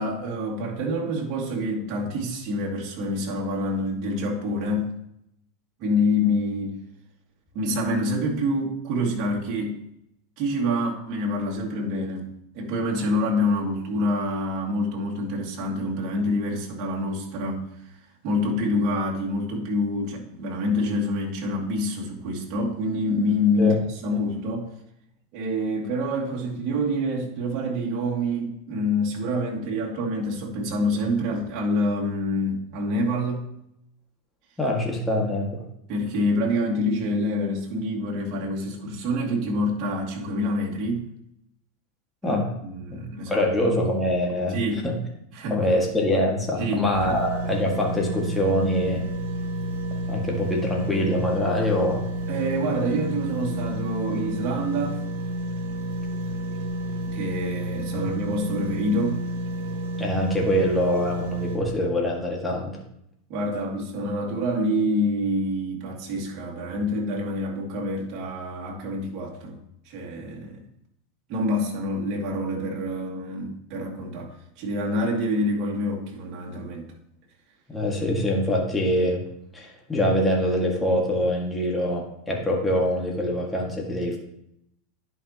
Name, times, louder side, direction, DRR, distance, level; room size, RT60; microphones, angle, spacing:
voice 1, 0.0-4.9 5.8-6.8 7.5-9.8 10.4-17.7 18.2-24.7 25.3-33.4 35.9-41.1 42.2-43.5 44.5-44.8 45.3-45.7 46.6-47.2 52.3-55.0 57.0-59.2 63.3-69.6 69.9-70.7 71.3-76.9, left 1 dB, 50° right, -2 dB, 2.4 m, -27 dB
voice 2, 34.6-35.6 42.2-42.5 43.3-45.0 45.5-49.0 50.1-52.1 57.9-58.1 60.0-62.8 77.7-79.2 79.5-84.2, left 1 dB, 10° left, -1 dB, 1.8 m, -24 dB
water cooler running turn off, 46.9-61.6, right 1 dB, 80° right, 1.3 m, -30 dB
10.5 x 5.5 x 2.9 m, 0.77 s
hypercardioid pair, 115°, 0 cm